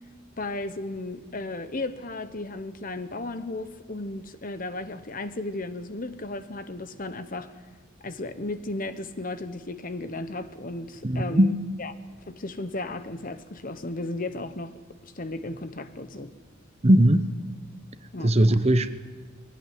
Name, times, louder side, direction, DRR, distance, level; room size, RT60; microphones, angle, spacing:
voice 1, 0.4-7.6 8.0-11.9 12.3-14.7 15.1-16.3 18.1-18.4, left 2 dB, 40° left, 1.0 m, -34 dB
voice 2, 11.0-11.5 16.8-17.3 18.2-18.9, right 1 dB, 30° right, 0.8 m, -19 dB
21.0 x 17.5 x 9.4 m
head